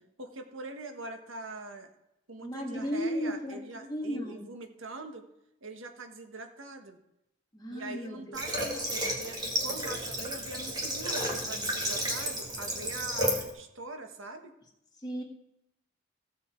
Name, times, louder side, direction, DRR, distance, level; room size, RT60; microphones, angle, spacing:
voice 1, 0.2-1.9 2.3-5.3 5.6-7.0 7.7-14.6, right 3 dB, 90° right, 6 dB, 1.3 m, -43 dB
voice 2, 2.4-4.5 7.5-8.3 15.0-15.2, equal, 20° left, 0 dB, 1.7 m, -35 dB
Water / Water tap faucet, 8.3-13.5, equal, 20° right, 1.9 m, -32 dB
16.0 x 7.1 x 4.4 m, 0.85 s
head